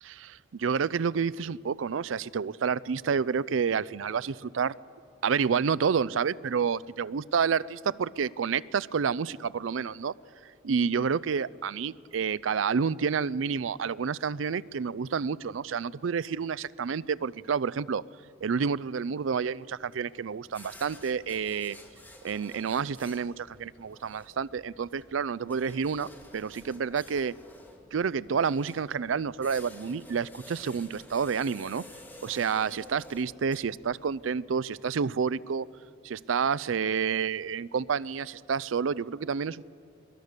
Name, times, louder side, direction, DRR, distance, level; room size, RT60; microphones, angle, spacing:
voice 1, 0.0-4.7 5.2-10.1 10.6-18.0 18.4-21.8 22.2-26.1 26.3-27.3 27.9-31.8 32.2-35.7 36.0-39.6, right 6 dB, 90° right, 20 dB, 0.4 m, -29 dB
sound 1, 20.4-34.3, left 1 dB, 10° left, 2.0 m, -51 dB
22.5 x 22.0 x 6.7 m, 2.4 s
head